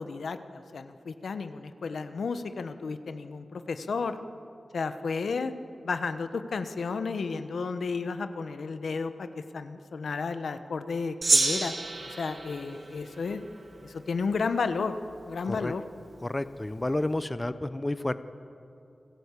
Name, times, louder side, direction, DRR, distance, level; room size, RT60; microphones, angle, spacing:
voice 1, 0.0-4.2 4.7-5.5 5.8-11.7 12.0-13.4 13.8-14.9 15.2-15.8, left 4 dB, 85° left, 9 dB, 1.1 m, -32 dB
Gong, 11.2-13.9, right 3 dB, 60° right, 2.7 m, -29 dB
voice 2, 16.2-18.2, left 1 dB, 20° left, 12 dB, 0.8 m, -30 dB
28.0 x 15.0 x 8.3 m, 2.6 s
wide cardioid pair, 75°, 0 cm